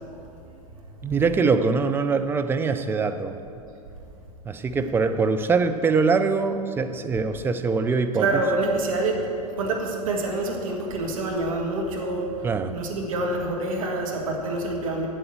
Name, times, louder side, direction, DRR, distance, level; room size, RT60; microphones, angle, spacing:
voice 1, 1.0-3.4 4.4-8.3 12.4-12.8, right 4 dB, 10° right, 8 dB, 0.4 m, -23 dB
voice 2, 8.1-15.1, right 2 dB, 60° right, 1 dB, 1.4 m, -27 dB
7.9 x 7.8 x 7.5 m, 2.6 s
figure-of-eight pair, 90°, 20 cm